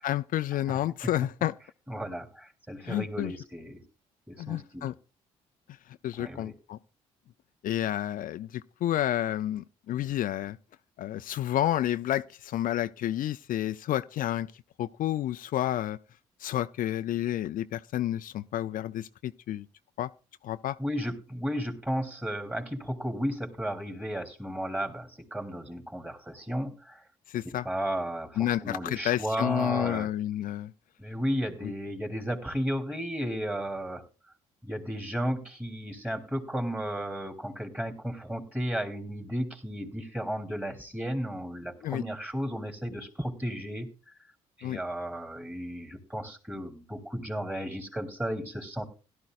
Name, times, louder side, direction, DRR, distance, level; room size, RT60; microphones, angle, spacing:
voice 1, 0.0-1.5 2.8-3.3 4.4-4.9 6.0-6.8 7.6-10.6 11.0-14.5 14.8-16.0 16.4-19.7 20.0-20.1 20.4-20.8 27.3-27.7 28.4-30.7 31.6-31.7 41.8-42.0 44.6-44.8, left 12 dB, 60° left, 0.5 m, -30 dB
voice 2, 1.9-3.8 4.3-4.9 6.2-6.5 20.8-27.0 27.4-30.1 31.0-34.0 34.6-43.9 44.6-48.8, equal, 10° right, 3.3 m, -34 dB
17.0 x 12.0 x 2.5 m
hypercardioid pair, 60°, 16 cm